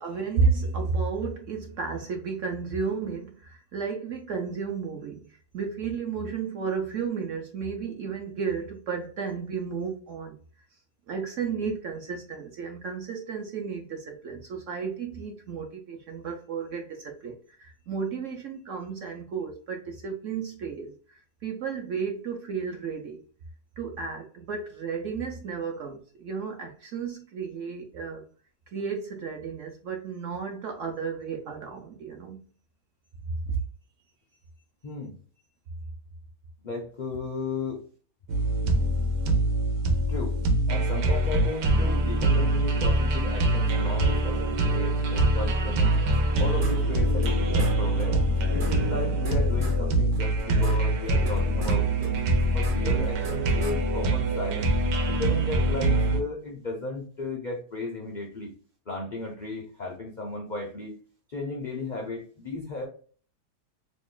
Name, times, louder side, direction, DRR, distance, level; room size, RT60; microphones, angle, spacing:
voice 1, 0.0-5.2 5.5-10.4 11.1-17.3 17.6-20.9 21.4-23.2 23.8-28.2 28.7-32.4 33.5-33.6, right 5 dB, 65° right, 0.8 m, -32 dB
voice 2, 34.8-35.2 36.6-37.8 40.1-40.4 40.7-46.0 46.4-48.2 48.5-52.1 52.5-54.7 55.1-58.5 58.9-61.0 61.3-62.9, left 3 dB, 75° left, 0.4 m, -35 dB
sound 1, 38.3-56.2, right 1 dB, 85° right, 1.3 m, -24 dB
sound 2, 46.1-47.3 47.6-47.7 48.0-48.1 48.3-49.8 50.1-51.8 52.0-53.7, equal, 45° right, 1.1 m, -36 dB
3.0 x 2.4 x 3.7 m
omnidirectional pair, 1.8 m